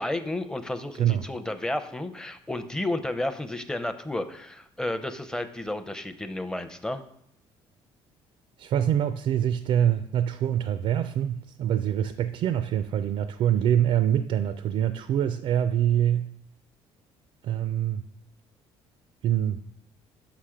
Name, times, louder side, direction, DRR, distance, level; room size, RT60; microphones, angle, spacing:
voice 1, 0.0-7.0, left 1 dB, 5° left, 0.6 m, -32 dB
voice 2, 8.6-16.3 17.4-18.0 19.2-19.6, right 10 dB, 60° right, 0.4 m, -25 dB
6.0 x 5.8 x 4.9 m
cardioid pair, 120°, 11 cm